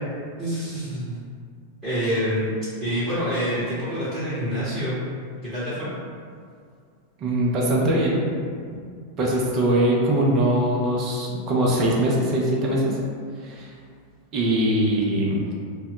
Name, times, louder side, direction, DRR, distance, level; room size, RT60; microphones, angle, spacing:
voice 1, 0.4-1.2 1.8-2.5 2.8-5.0 5.4-5.9, equal, 15° right, -13 dB, 0.9 m, -26 dB
voice 2, 7.2-8.2 8.7-8.8 9.2-13.0 13.4-13.7 14.3-15.4, right 1 dB, 35° right, -3 dB, 0.5 m, -22 dB
2.1 x 2.0 x 3.7 m, 2.2 s
figure-of-eight pair, 90°, 0 cm